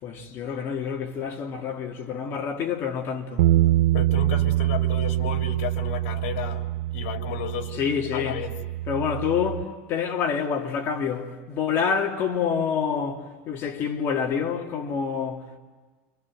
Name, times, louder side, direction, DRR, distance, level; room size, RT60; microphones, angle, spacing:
voice 1, 0.0-3.5 7.7-8.4 8.9-15.6, left 7 dB, 40° left, 2.9 m, -27 dB
sound 1, 3.4-9.6, right 15 dB, 75° right, 1.1 m, -25 dB
voice 2, 3.9-6.7 6.9-7.7 8.1-8.5, left 8 dB, 75° left, 3.3 m, -33 dB
28.5 x 26.0 x 7.8 m
supercardioid pair, 150°, 7 cm